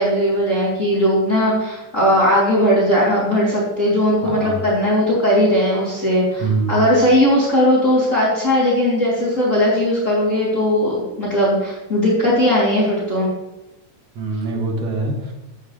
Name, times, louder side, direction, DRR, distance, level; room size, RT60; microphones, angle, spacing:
voice 1, 0.0-13.3, equal, 25° left, -8 dB, 3.1 m, -18 dB
voice 2, 4.2-4.6 6.4-6.9 14.2-15.3, right 3 dB, 55° right, 2 dB, 2.4 m, -23 dB
15.5 x 7.5 x 3.2 m, 1.0 s
omnidirectional pair, 3.6 m